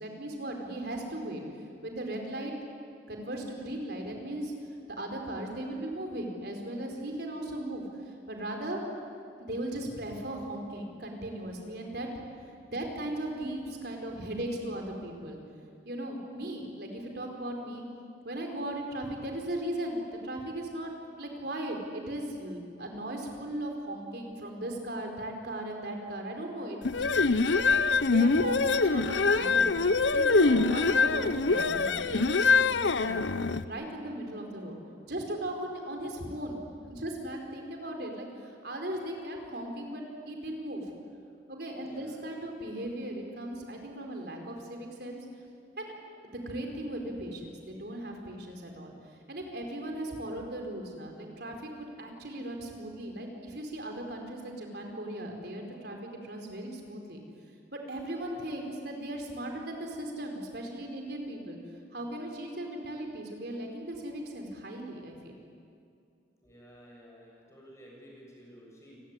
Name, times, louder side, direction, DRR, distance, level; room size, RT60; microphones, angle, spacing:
voice 1, 0.0-1.4 1.8-2.5 3.1-4.5 4.9-8.8 9.4-12.1 12.6-15.4 15.8-17.8 18.2-20.9 21.2-33.2 33.6-34.8 35.0-36.6 36.9-40.9 41.5-45.3 45.8-45.9 46.2-57.2 57.7-65.4, right 1 dB, 55° right, 2 dB, 4.6 m, -37 dB
sound 1, 26.8-33.6, left 4 dB, 75° left, 0.8 m, -24 dB
voice 2, 41.8-42.2 58.1-58.4 66.4-69.0, equal, 15° left, -3 dB, 7.9 m, -53 dB
29.5 x 19.5 x 9.9 m, 2.4 s
head